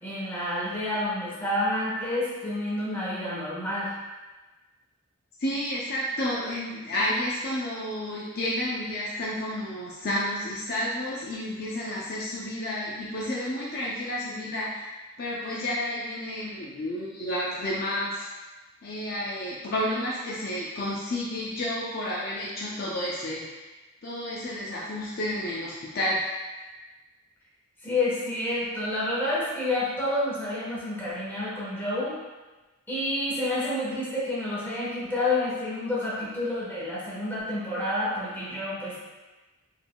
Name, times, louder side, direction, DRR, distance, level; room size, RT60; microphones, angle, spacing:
voice 1, 0.0-3.9 27.8-32.2 32.9-39.0, left 1 dB, 10° left, -8 dB, 1.1 m, -29 dB
voice 2, 5.4-14.9 15.2-18.3 18.8-23.5 24.0-26.3, left 1 dB, 45° left, -6 dB, 0.5 m, -31 dB
4.6 x 3.4 x 2.2 m, 1.2 s
head